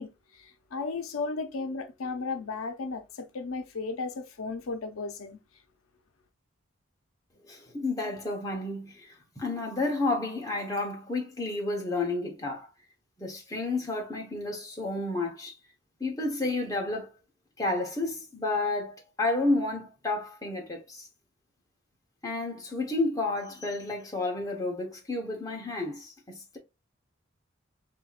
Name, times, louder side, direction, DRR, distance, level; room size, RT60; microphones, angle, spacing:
voice 1, 0.0-5.4, left 4 dB, 80° left, 0.6 m, -35 dB
voice 2, 7.5-12.7 13.2-15.5 16.0-17.1 17.6-21.1 22.2-26.6, left 2 dB, 15° left, 1.0 m, -31 dB
5.6 x 2.7 x 2.4 m
head